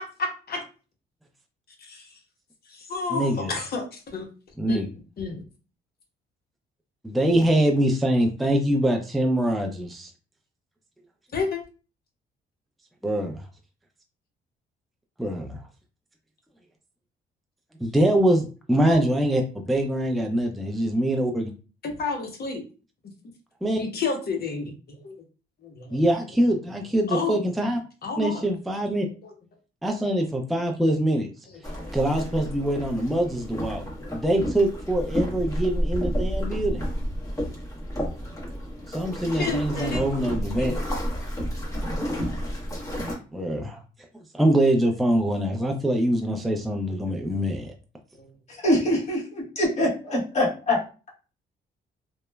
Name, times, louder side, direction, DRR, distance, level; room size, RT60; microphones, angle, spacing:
voice 1, 0.2-0.6 1.8-2.2 2.7-4.3 4.7-4.9 5.2-5.4 11.3-11.6 18.9-19.0 21.8-22.6 23.7-25.2 25.6-26.0 27.1-27.4 28.0-28.4 29.2-29.3 30.6-30.7 31.8-32.2 34.0-34.1 35.1-35.5 39.3-40.0 40.6-40.8 48.1-48.3, left 4 dB, 50° left, 2 dB, 0.8 m, -31 dB
voice 2, 3.1-3.5 4.6-4.9 7.0-10.1 13.0-13.4 15.2-15.6 17.8-21.5 23.6-23.8 25.9-27.8 28.2-29.1 29.8-31.3 31.9-33.8 34.1-36.9 38.9-40.7 43.3-43.8 44.3-47.7, right 1 dB, ahead, 2 dB, 0.4 m, -24 dB
sound 1, 31.6-43.1, equal, 15° left, 1.0 m, -31 dB
voice 3, 48.6-50.8, left 1 dB, 35° left, -5 dB, 1.3 m, -24 dB
2.9 x 2.1 x 2.2 m, 0.35 s
cardioid pair, 90°, 20 cm